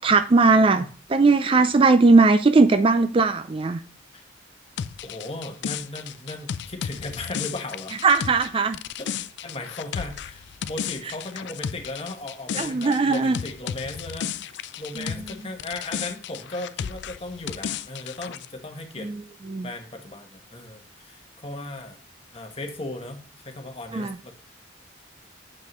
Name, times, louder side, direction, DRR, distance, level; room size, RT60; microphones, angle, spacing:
voice 1, 0.0-3.8 8.0-8.8 12.6-13.4 15.0-15.3 19.0-19.2 19.5-19.7 23.9-24.2, right 3 dB, 25° right, 9 dB, 0.4 m, -19 dB
sound 1, 4.8-15.3 15.6-18.5, left 8 dB, 60° left, 0.3 m, -33 dB
voice 2, 5.0-8.0 9.0-19.1 19.6-22.0 22.3-24.3, left 2 dB, 30° left, 5 dB, 1.1 m, -37 dB
7.4 x 5.3 x 3.1 m, 0.38 s
head